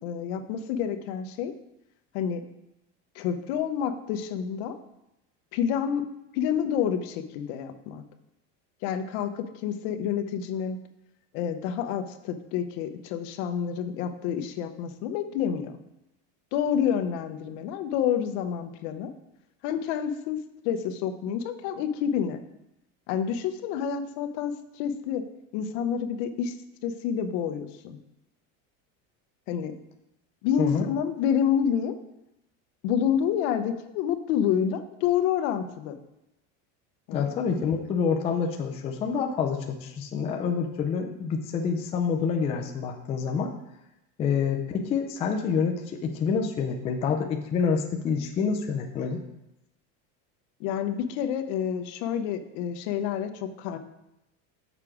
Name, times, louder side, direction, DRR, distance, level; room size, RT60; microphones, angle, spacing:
voice 1, 0.0-1.5 2.1-2.4 3.2-4.8 5.5-6.1 6.3-8.0 8.8-10.8 11.3-15.8 16.5-19.1 19.6-22.4 23.1-25.3 25.5-26.5 26.8-28.0 29.5-29.7 30.4-32.0 32.8-35.9 37.1-37.3 50.6-53.8, left 8 dB, 60° left, 8 dB, 0.8 m, -28 dB
voice 2, 37.1-43.5 44.2-49.2, left 6 dB, 15° left, 2 dB, 0.3 m, -27 dB
6.7 x 5.9 x 4.9 m, 0.89 s
cardioid pair, 170°, 37 cm